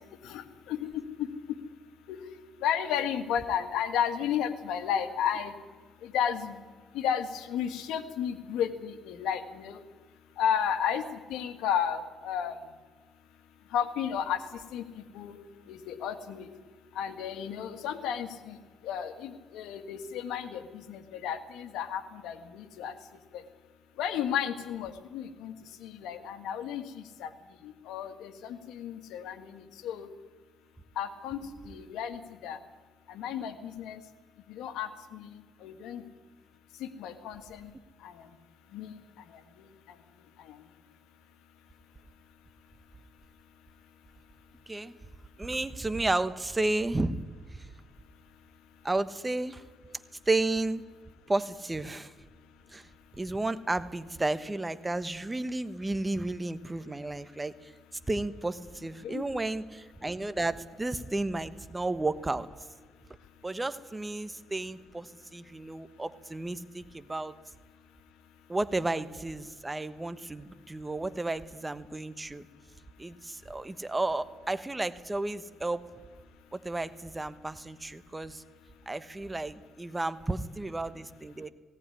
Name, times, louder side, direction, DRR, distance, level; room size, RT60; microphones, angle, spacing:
voice 1, 0.2-1.3 2.1-2.2 2.6-5.5 6.0-6.6 6.9-9.8 10.4-11.0 11.3-12.5 13.7-14.4 14.7-14.8 15.1-15.4 15.7-16.4 17.0-18.6 18.8-22.9 23.3-23.4 24.0-25.5 25.8-27.3 27.6-30.1 31.0-31.4 31.7-32.6 33.1-34.0 34.5-36.0 36.8-37.7 38.0-38.1 38.7-39.0 39.6-39.7 59.0-59.2, left 8 dB, 90° left, 9 dB, 1.8 m, -33 dB
voice 2, 31.5-31.9 44.7-45.0 45.4-47.2 47.5-47.7 48.8-49.6 50.3-50.8 51.3-52.1 52.7-52.9 53.2-57.7 58.1-62.5 63.4-67.3 68.5-72.4 73.0-75.9 76.5-78.4 78.9-81.5, right 2 dB, 15° right, 13 dB, 1.2 m, -32 dB
18.0 x 17.5 x 9.9 m, 1.4 s
cardioid pair, 90°, 0 cm